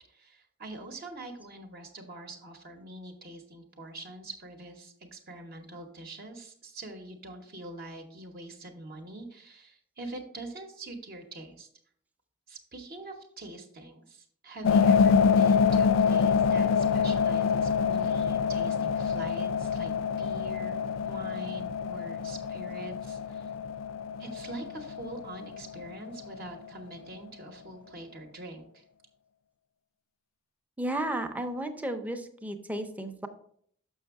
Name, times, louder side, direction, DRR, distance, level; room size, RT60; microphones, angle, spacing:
voice 1, 0.1-11.7 12.5-19.9 20.2-23.5 24.2-28.8, right 2 dB, 50° right, 3 dB, 0.8 m, -44 dB
sound 1, 14.6-26.4, left 6 dB, 80° left, 0.3 m, -26 dB
voice 2, 30.8-33.3, right 1 dB, 10° right, 6 dB, 0.5 m, -33 dB
6.2 x 6.0 x 3.5 m, 0.63 s
head